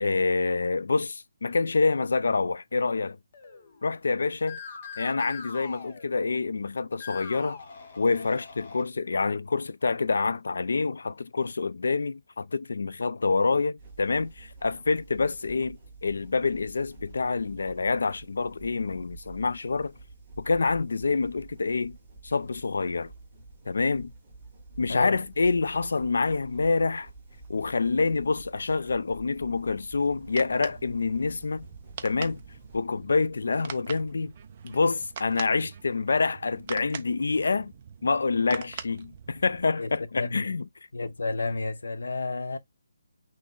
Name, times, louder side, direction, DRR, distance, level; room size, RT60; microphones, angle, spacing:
voice 1, 0.0-3.2 3.8-4.6 5.0-7.6 8.0-19.9 20.4-22.0 22.2-23.1 23.7-24.1 24.8-27.1 27.5-31.7 32.0-32.4 32.7-34.3 34.6-37.7 38.0-40.6, left 4 dB, 60° left, 0.3 m, -27 dB
sound 1, 3.3-4.0 4.4-6.6 6.9-8.8, left 5 dB, 25° left, 0.9 m, -43 dB
sound 2, 13.8-32.8, right 3 dB, 5° right, 1.2 m, -49 dB
sound 3, 30.0-39.6, right 7 dB, 20° right, 0.4 m, -44 dB
voice 2, 39.8-40.5 40.9-42.6, left 3 dB, 80° left, 0.8 m, -31 dB
6.1 x 2.1 x 3.6 m
hypercardioid pair, 180°, 0 cm